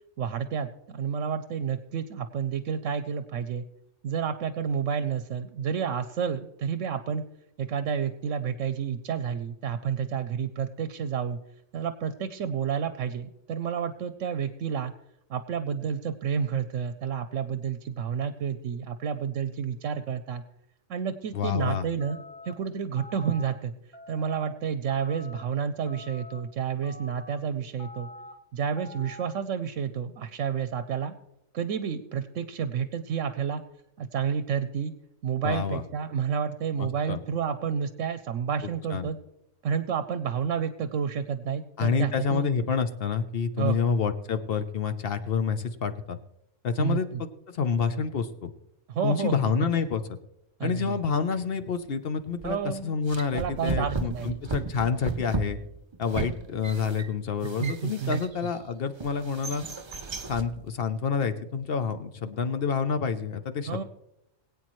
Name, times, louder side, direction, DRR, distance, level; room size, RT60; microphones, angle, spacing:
voice 1, 0.2-3.6 4.0-7.2 7.6-11.4 11.7-14.9 15.3-20.4 20.9-23.7 24.1-28.1 28.5-31.1 31.5-33.6 34.0-34.9 35.2-39.2 39.6-42.5 43.6-43.9 46.8-47.2 48.9-49.7 50.6-51.0 52.4-53.0 53.3-54.6 57.6-58.2 63.7-63.8, right 7 dB, 75° right, 11 dB, 1.0 m, -30 dB
voice 2, 21.3-21.8 35.4-35.8 36.8-37.2 38.9-39.1 41.8-46.2 46.6-48.5 49.0-50.2 50.6-55.6 56.0-59.6 60.3-63.8, left 6 dB, 55° left, 9 dB, 0.9 m, -28 dB
sound 1, 22.0-22.5 23.0-23.5 23.9-24.5 24.9-25.4 25.9-26.4 26.8-27.4 27.8-28.3 28.8-29.3, left 2 dB, 15° right, 1.3 m, -45 dB
sound 2, 52.4-52.6 53.1-58.5 59.0-60.5, right 4 dB, 40° right, 0.4 m, -35 dB
21.5 x 8.6 x 3.1 m, 0.86 s
omnidirectional pair, 1.4 m